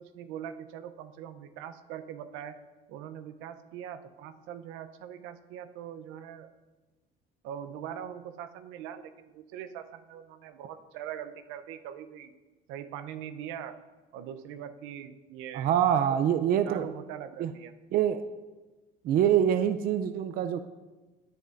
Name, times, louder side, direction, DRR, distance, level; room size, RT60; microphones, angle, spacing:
voice 1, 0.0-2.5 2.9-6.5 7.4-12.3 12.7-13.8 14.1-16.2 16.6-17.7, right 9 dB, 85° right, 9 dB, 0.7 m, -42 dB
voice 2, 15.5-16.9 17.4-17.5 17.9-18.2 19.0-20.6, right 9 dB, 50° right, 9 dB, 0.5 m, -25 dB
13.0 x 8.0 x 2.6 m, 1.2 s
cardioid pair, 130°, 20 cm